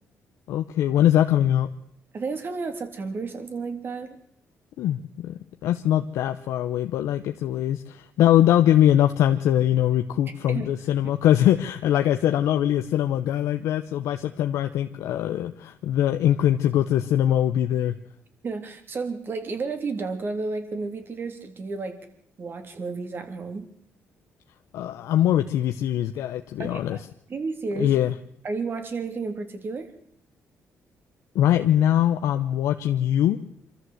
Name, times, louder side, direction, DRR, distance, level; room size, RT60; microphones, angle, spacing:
voice 1, 0.5-1.7 4.8-18.0 24.7-27.0 27.8-28.1 31.3-33.4, left 11 dB, 85° left, 6 dB, 0.9 m, -22 dB
voice 2, 2.1-4.2 10.5-10.7 18.4-22.0 22.4-23.7 26.6-27.0 27.3-27.9 28.4-29.9, right 4 dB, 45° right, 7 dB, 3.3 m, -32 dB
24.5 x 13.5 x 7.9 m, 0.71 s
cardioid pair, 90°, 5 cm